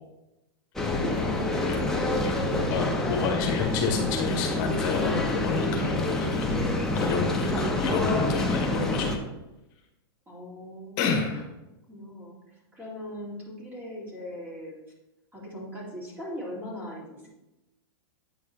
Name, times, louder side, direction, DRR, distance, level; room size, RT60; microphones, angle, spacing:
sound 1, 0.8-9.2, left 2 dB, 5° left, 0.7 m, -27 dB
voice 1, 1.2-2.2 10.3-11.1 11.9-14.8 15.3-17.3, equal, 15° right, -5 dB, 2.4 m, -40 dB
voice 2, 2.2-9.1 11.0-11.4, left 6 dB, 50° left, 3 dB, 1.0 m, -30 dB
8.5 x 4.7 x 2.8 m, 0.98 s
hypercardioid pair, 125°, 13 cm